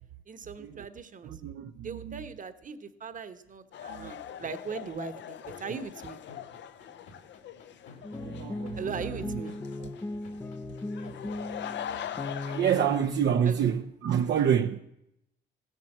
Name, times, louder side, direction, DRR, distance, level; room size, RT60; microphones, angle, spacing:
voice 1, 0.3-1.4 1.8-6.2 8.8-9.6 13.4-13.6, right 5 dB, 40° right, 1.1 m, -39 dB
voice 2, 1.2-2.2 3.9-4.1 8.2-8.9 9.3-9.4 9.8-9.9 11.9-12.1 12.4-14.8, right 9 dB, 65° right, 0.6 m, -28 dB
sound 1, 3.7-13.1, left 10 dB, 65° left, 0.7 m, -42 dB
sound 2, 5.5-11.6, left 5 dB, 85° left, 2.7 m, -51 dB
sound 3, 8.0-13.5, left 2 dB, 15° left, 0.6 m, -37 dB
15.5 x 7.6 x 7.8 m
cardioid pair, 90°, 20 cm